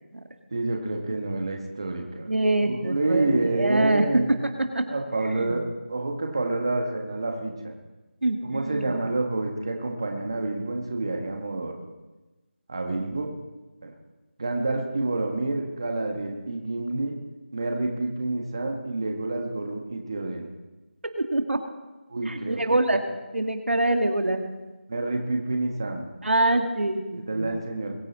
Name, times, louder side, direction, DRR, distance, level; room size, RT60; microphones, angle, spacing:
voice 1, 0.5-2.3 2.6-4.3 4.8-7.5 8.4-11.7 12.7-13.3 13.8-13.9 14.4-17.1 17.5-20.5 22.1-22.6 24.9-26.1 27.1-27.9, right 2 dB, 25° right, 3 dB, 1.3 m, -28 dB
voice 2, 2.3-4.9 5.3-5.6 8.2-8.9 21.0-21.6 22.3-23.0 23.3-24.5 26.2-27.6, right 2 dB, 90° right, 5 dB, 2.2 m, -25 dB
22.5 x 9.2 x 4.2 m, 1.1 s
figure-of-eight pair, 180°, 6 cm